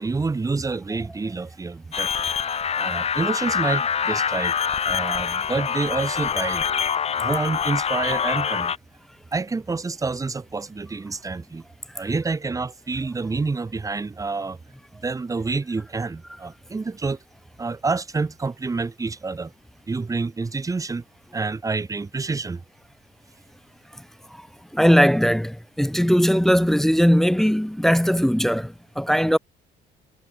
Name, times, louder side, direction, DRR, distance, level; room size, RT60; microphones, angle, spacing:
voice 1, 0.0-2.1 2.8-4.5 4.9-6.6 7.2-8.7 9.3-11.6 11.9-14.6 14.9-17.2 17.6-19.5 19.9-21.0 21.3-22.6, right 4 dB, 20° right, 2.0 m, -28 dB
sound 1, 1.9-8.8, left 7 dB, 40° left, 2.1 m, -25 dB
voice 2, 24.7-29.4, equal, ahead, 0.5 m, -19 dB
cardioid pair, 110°, 17 cm